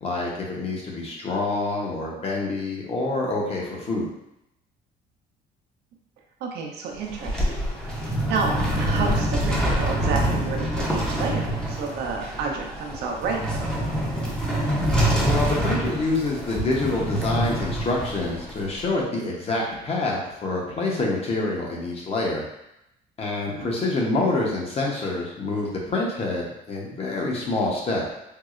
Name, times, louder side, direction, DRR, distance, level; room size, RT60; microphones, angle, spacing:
voice 1, 0.0-4.1 15.1-22.4 23.2-28.1, left 2 dB, 35° left, -2 dB, 0.9 m, -27 dB
voice 2, 6.4-7.3 8.2-13.7 23.5-23.7, right 4 dB, 80° right, 1 dB, 0.6 m, -30 dB
sound 1, 6.9-18.8, right 1 dB, 5° left, 0.6 m, -26 dB
4.6 x 2.0 x 2.4 m, 0.84 s
cardioid pair, 110°, 17 cm